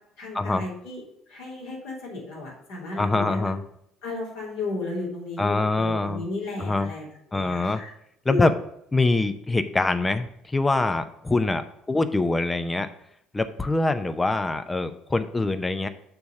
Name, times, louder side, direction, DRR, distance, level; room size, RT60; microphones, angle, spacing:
voice 1, 0.2-3.5 4.0-7.9 8.2-8.5, left 3 dB, 70° left, -4 dB, 3.1 m, -34 dB
voice 2, 3.0-3.6 5.4-6.2 6.6-6.9 7.3-7.8 8.2-8.5 8.9-12.9 13.3-15.9, left 2 dB, 20° left, 10 dB, 0.6 m, -24 dB
6.9 x 4.1 x 6.5 m, 0.74 s
figure-of-eight pair, 60°, 0 cm